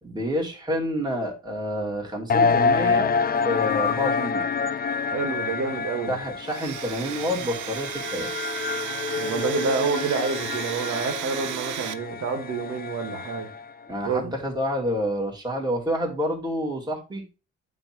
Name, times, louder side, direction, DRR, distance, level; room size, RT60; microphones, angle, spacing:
voice 1, 0.0-3.1 3.4-4.5 6.1-8.3 13.9-17.2, equal, 15° right, 2.9 m, -28 dB
sound 1, 2.3-13.7, left 5 dB, 30° left, 0.5 m, -27 dB
voice 2, 5.1-6.2 9.2-13.5 14.0-14.3, right 5 dB, 60° right, 1.8 m, -28 dB
Domestic sounds home sounds, 6.4-11.9, right 12 dB, 80° right, 0.8 m, -34 dB
7.7 x 3.2 x 6.2 m
cardioid pair, 90°, 30 cm